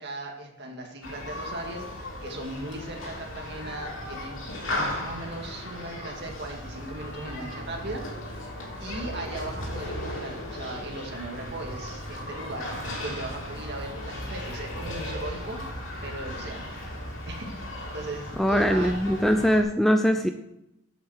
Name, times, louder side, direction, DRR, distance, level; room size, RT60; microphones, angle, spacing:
voice 1, 0.0-8.1 8.4-8.5 8.8-15.6 16.0-16.7 17.3-17.5 17.9-19.0, right 2 dB, 50° right, 2 dB, 2.1 m, -38 dB
Human group actions, 1.0-19.6, left 1 dB, 70° left, 3.1 m, -36 dB
voice 2, 18.4-20.3, equal, ahead, 6 dB, 0.5 m, -22 dB
8.3 x 7.6 x 6.4 m, 0.86 s
head